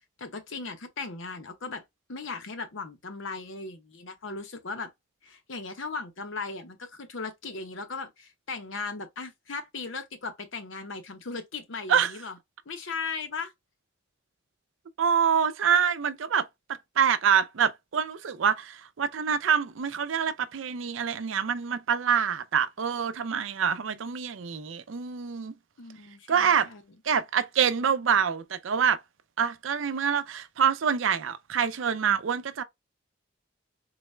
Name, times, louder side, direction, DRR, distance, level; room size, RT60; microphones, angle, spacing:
voice 1, 0.2-1.8 2.1-4.9 5.2-12.4 12.7-13.5 25.8-26.8, left 4 dB, 75° left, 0.9 m, -37 dB
voice 2, 15.0-25.5 26.3-26.7 27.0-29.0 29.4-32.6, right 7 dB, 75° right, 0.5 m, -26 dB
4.0 x 2.2 x 3.2 m
head